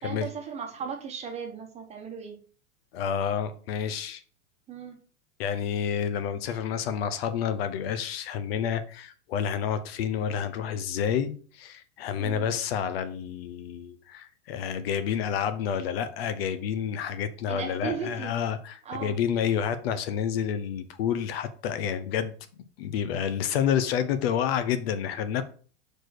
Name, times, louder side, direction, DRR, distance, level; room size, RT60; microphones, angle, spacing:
voice 1, 0.0-2.4 4.7-5.0 12.2-12.5 17.5-18.3 18.8-19.2, right 6 dB, 20° right, 1.1 m, -36 dB
voice 2, 2.9-4.2 5.4-22.3 22.8-25.4, left 8 dB, 55° left, 0.8 m, -29 dB
4.9 x 4.5 x 6.0 m
supercardioid pair, 150°, 35 cm